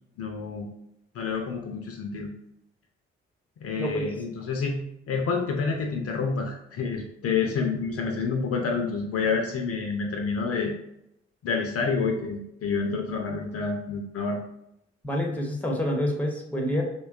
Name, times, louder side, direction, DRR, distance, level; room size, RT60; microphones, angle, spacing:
voice 1, 0.2-0.7 1.1-2.3 3.6-4.8 5.1-10.8 11.4-14.4, left 4 dB, 50° left, 2 dB, 0.5 m, -28 dB
voice 2, 15.0-16.8, left 1 dB, 5° left, 1 dB, 0.6 m, -27 dB
2.7 x 2.2 x 2.4 m, 0.80 s
hypercardioid pair, 45°, 31 cm